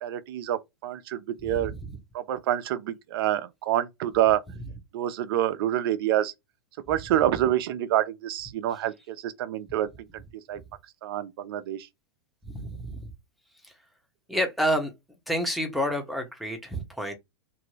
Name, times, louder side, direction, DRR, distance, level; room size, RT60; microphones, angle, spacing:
voice 1, 0.0-1.7 2.1-4.4 4.9-6.3 6.9-9.9 10.5-10.6 11.0-11.9, right 12 dB, 65° right, 0.6 m, -27 dB
voice 2, 1.4-2.0 12.4-13.1 13.6-13.7 14.3-14.9 15.3-17.1, equal, ahead, 1.0 m, -29 dB
2.8 x 2.6 x 3.2 m
hypercardioid pair, 110°, 13 cm